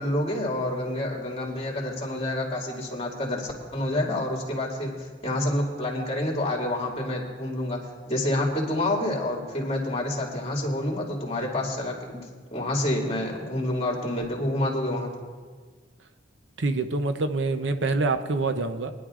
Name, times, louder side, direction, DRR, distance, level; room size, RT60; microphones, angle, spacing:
voice 1, 0.0-12.2 12.5-15.1, left 1 dB, 35° left, -1 dB, 2.3 m, -28 dB
voice 2, 16.6-18.9, right 3 dB, 75° right, 9 dB, 0.7 m, -26 dB
23.0 x 10.5 x 2.5 m, 1.5 s
head